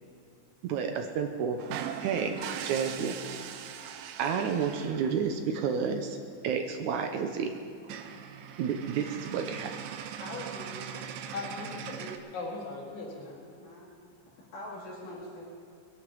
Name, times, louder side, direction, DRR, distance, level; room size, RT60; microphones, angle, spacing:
voice 1, 0.6-1.6 2.0-3.2 4.2-6.2 6.4-7.5 8.6-9.7, right 6 dB, 70° right, 5 dB, 2.1 m, -30 dB
sound 1, 1.6-5.2 6.8-6.9 7.1-7.3 7.6-7.7 7.8-12.2, right 8 dB, 90° right, 2.5 m, -40 dB
voice 2, 10.2-10.8 13.2-13.9 14.2-15.4, left 1 dB, 75° left, -8 dB, 4.2 m, -43 dB
voice 3, 11.3-13.3, left 3 dB, 60° left, -4 dB, 4.8 m, -39 dB
21.5 x 11.0 x 5.3 m, 2.4 s
omnidirectional pair, 3.8 m